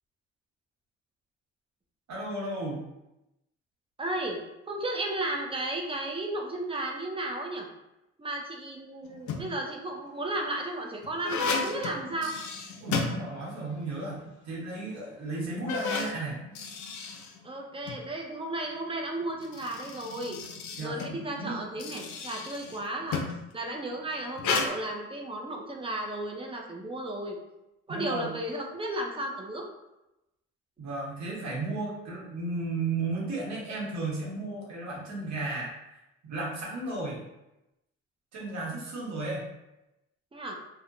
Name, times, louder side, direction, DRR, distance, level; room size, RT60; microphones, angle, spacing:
voice 1, 2.1-2.8 12.8-16.4 20.8-21.6 27.9-28.3 30.8-35.7 36.2-37.2 38.3-39.5, right 2 dB, 65° right, -4 dB, 1.1 m, -34 dB
voice 2, 4.0-4.4 4.7-7.7 8.2-12.3 17.4-20.4 20.8-23.2 23.5-27.4 27.9-29.7 40.3-40.6, right 1 dB, 20° right, 1 dB, 0.5 m, -34 dB
sound 1, 9.0-9.7 10.4-13.8 14.1-14.2 14.9-15.0 15.5-18.0 19.2-23.5 24.4-24.7, left 4 dB, 70° left, 0.5 m, -34 dB
2.8 x 2.1 x 2.5 m, 0.92 s
cardioid pair, 90°, 30 cm